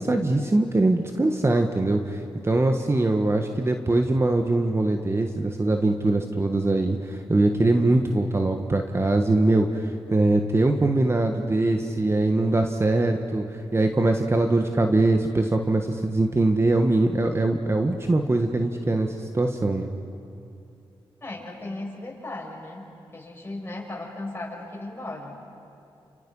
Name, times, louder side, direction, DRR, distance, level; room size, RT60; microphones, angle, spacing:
voice 1, 0.0-13.4 13.7-19.9, right 2 dB, 30° right, 4 dB, 1.5 m, -22 dB
voice 2, 21.2-25.4, left 2 dB, 25° left, -2 dB, 7.3 m, -36 dB
29.5 x 28.5 x 5.6 m, 2.6 s
cardioid pair, 65°, 9 cm